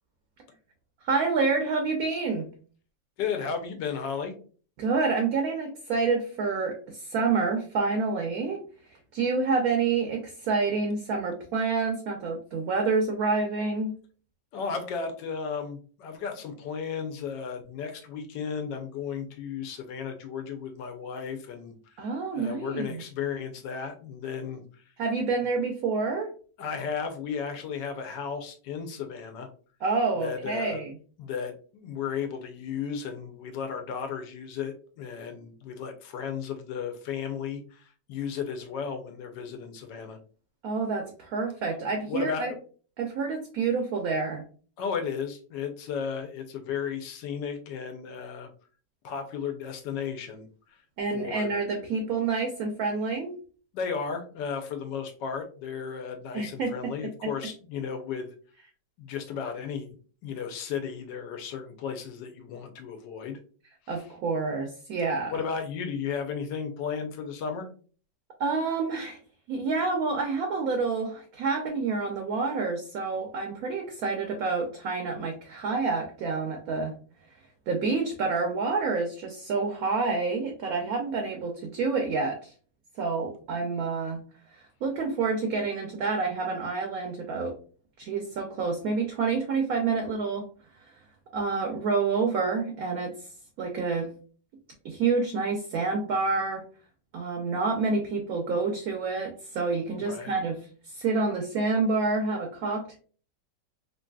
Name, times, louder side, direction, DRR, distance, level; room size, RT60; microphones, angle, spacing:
voice 1, 1.0-2.5 4.8-8.6 9.1-13.9 22.0-23.0 25.0-26.3 29.8-30.9 40.6-42.5 43.0-44.4 51.0-53.3 56.3-56.9 63.9-65.3 68.4-69.2 69.5-76.9 77.7-82.5 83.0-84.2 84.8-87.6 88.0-90.5 91.3-93.1 93.6-94.1 94.8-96.6 97.1-103.0, right 4 dB, 70° right, 3 dB, 0.9 m, -28 dB
voice 2, 3.2-4.3 14.5-21.7 22.3-24.6 26.6-29.5 30.2-30.8 31.2-40.2 42.1-42.5 44.8-48.5 49.0-50.8 51.1-51.5 53.7-58.3 59.0-59.9 60.2-63.4 65.3-67.7 100.0-100.3, left 6 dB, 80° left, 5 dB, 1.3 m, -34 dB
3.2 x 2.6 x 2.2 m, 0.40 s
omnidirectional pair, 1.9 m